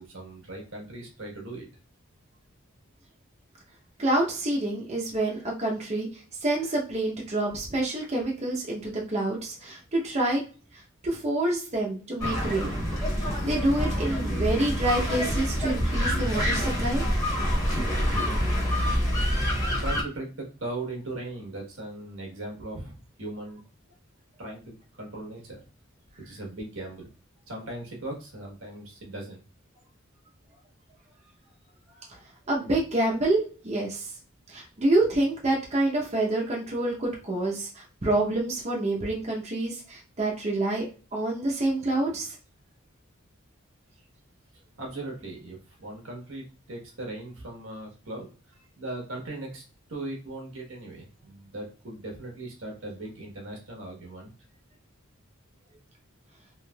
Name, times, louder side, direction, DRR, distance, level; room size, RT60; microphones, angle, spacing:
voice 1, 0.0-1.6 19.4-23.6 24.4-25.6 26.2-27.1 27.5-29.4 44.8-48.3 48.8-54.3, right 2 dB, 75° right, 0 dB, 1.2 m, -39 dB
voice 2, 4.0-6.1 6.4-10.4 11.0-12.8 13.2-17.0 32.5-33.4 33.6-34.1 34.5-40.9 41.1-42.4, right 2 dB, 35° right, -3 dB, 0.7 m, -27 dB
sound 1, 12.2-20.0, equal, 15° left, 1.3 m, -26 dB
3.2 x 3.1 x 2.3 m, 0.38 s
head